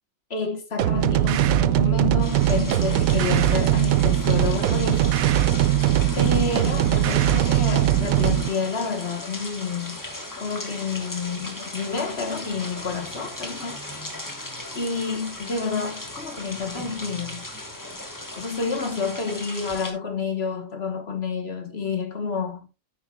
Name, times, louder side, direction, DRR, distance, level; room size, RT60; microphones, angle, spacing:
voice 1, 0.3-5.2 6.2-10.0 10.4-14.1 14.7-17.5 18.3-22.7, left 4 dB, 40° left, 1.3 m, -29 dB
sound 1, 0.8-8.5, right 13 dB, 80° right, 0.8 m, -20 dB
sound 2, 2.2-19.9, left 1 dB, 10° left, 1.2 m, -37 dB
10.0 x 8.5 x 2.3 m
omnidirectional pair, 2.0 m